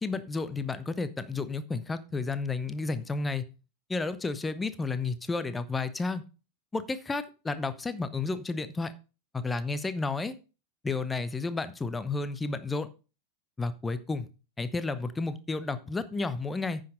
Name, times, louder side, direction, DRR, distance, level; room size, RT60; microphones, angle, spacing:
voice 1, 0.0-3.4 3.9-6.2 6.7-8.9 9.3-10.4 10.8-12.9 13.6-14.3 14.6-16.8, left 3 dB, 10° left, 13 dB, 0.8 m, -32 dB
9.6 x 6.5 x 5.3 m, 0.33 s
figure-of-eight pair, 90°, 0 cm